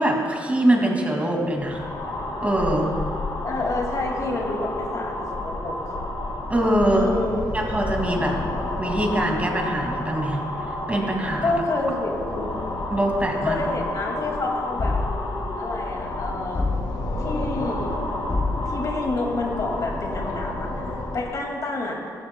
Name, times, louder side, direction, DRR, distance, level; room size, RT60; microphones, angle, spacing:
voice 1, 0.0-1.8 2.4-2.9 6.5-7.1 7.5-8.4 8.8-10.4 10.9-11.5 12.9-13.6, right 1 dB, 20° right, 1 dB, 2.2 m, -23 dB
sound 1, 1.5-21.4, left 2 dB, 75° left, 1.7 m, -30 dB
voice 2, 3.4-6.0 6.9-7.5 11.4-12.5 13.4-15.0 15.6-16.7 17.2-18.1 18.6-22.1, left 2 dB, 50° left, 0 dB, 2.1 m, -28 dB
sound 2, 14.8-15.5 16.5-17.3 18.3-19.0, left 3 dB, 35° left, 2.3 m, -27 dB
15.0 x 11.5 x 2.2 m, 2.3 s
cardioid pair, 70°, 7 cm